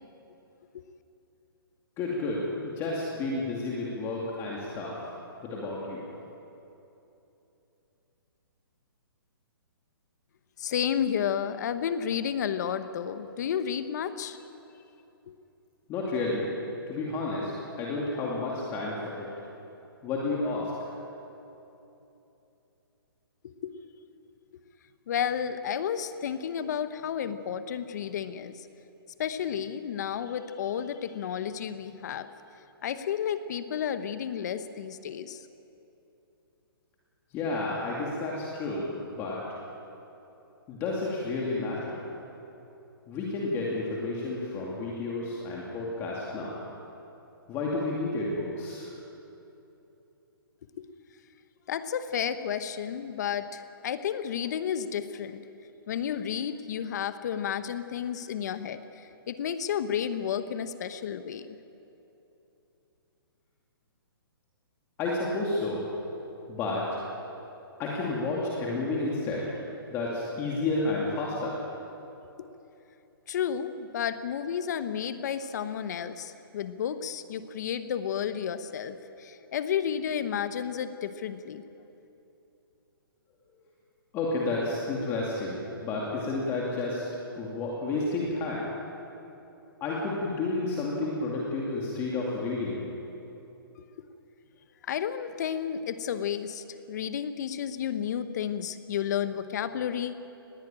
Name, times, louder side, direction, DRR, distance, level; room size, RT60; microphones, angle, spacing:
voice 1, 2.0-5.0 5.4-6.0 15.9-16.5 16.9-17.5 17.8-19.3 20.0-20.9 37.3-39.6 40.7-42.1 43.1-46.5 47.5-48.9 65.0-65.9 66.5-67.0 67.8-69.5 69.9-71.6 84.1-87.0 87.4-88.7 89.8-92.8, left 2 dB, 20° left, -4 dB, 2.5 m, -31 dB
voice 2, 10.6-14.4 15.3-15.4 23.4-23.7 25.1-28.7 29.2-32.3 32.8-35.4 50.8-50.9 51.7-55.4 55.9-61.5 72.4-72.5 73.3-81.6 94.9-100.1, left 8 dB, 45° left, 11 dB, 1.0 m, -32 dB
19.5 x 16.0 x 8.9 m, 2.9 s
hypercardioid pair, 155°, 13 cm